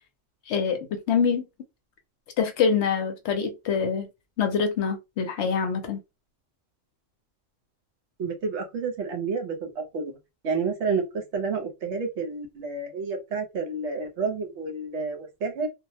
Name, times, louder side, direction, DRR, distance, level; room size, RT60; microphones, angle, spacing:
voice 1, 0.5-1.4 2.4-4.1 4.4-6.0, left 6 dB, 65° left, 0.8 m, -25 dB
voice 2, 8.2-10.1 10.4-15.7, right 4 dB, 65° right, 0.9 m, -30 dB
2.4 x 2.0 x 2.6 m
omnidirectional pair, 1.3 m